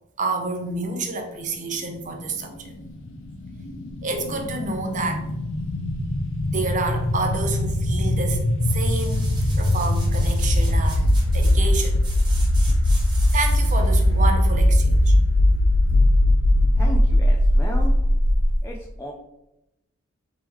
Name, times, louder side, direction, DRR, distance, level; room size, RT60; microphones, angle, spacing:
voice 1, 0.2-2.7 4.0-5.3 6.5-8.4 8.7-9.3 9.6-12.0 13.3-15.2, right 3 dB, 35° right, 4 dB, 0.7 m, -29 dB
sound 1, 2.7-18.6, left 1 dB, 65° left, 0.6 m, -20 dB
sound 2, 8.6-13.9 14.3-14.4, right 2 dB, 20° right, 1.0 m, -41 dB
voice 2, 16.8-17.9 18.6-19.1, equal, 10° left, 0 dB, 0.5 m, -35 dB
4.8 x 3.6 x 3.0 m, 0.88 s
head